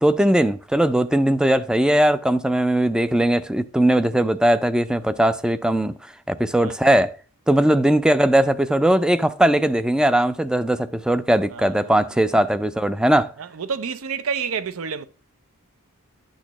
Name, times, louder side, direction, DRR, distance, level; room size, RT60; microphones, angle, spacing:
voice 1, 0.0-6.0 6.3-7.1 7.5-13.3, right 1 dB, 5° right, 0.3 m, -19 dB
voice 2, 11.5-11.9 13.4-15.0, right 6 dB, 70° right, 0.5 m, -29 dB
10.5 x 6.3 x 3.0 m
head